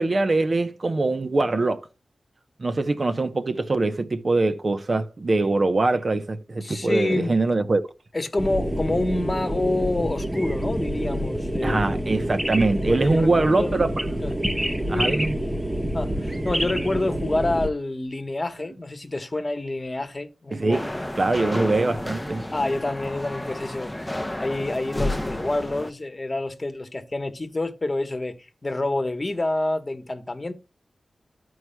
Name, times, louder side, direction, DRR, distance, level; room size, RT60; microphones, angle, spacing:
voice 1, 0.0-1.8 2.6-7.8 11.6-14.0 14.9-15.4 20.5-20.9 21.2-22.5, right 2 dB, 45° right, 0.7 m, -23 dB
voice 2, 6.6-7.3 8.1-11.9 12.9-13.8 14.2-14.3 14.9-15.2 15.9-20.8 22.5-30.5, left 2 dB, 30° left, 1.1 m, -28 dB
sound 1, 8.4-17.7, equal, 15° right, 1.1 m, -27 dB
sound 2, 20.7-25.9, left 1 dB, 10° left, 0.5 m, -31 dB
14.0 x 4.7 x 2.2 m
wide cardioid pair, 70°, 0 cm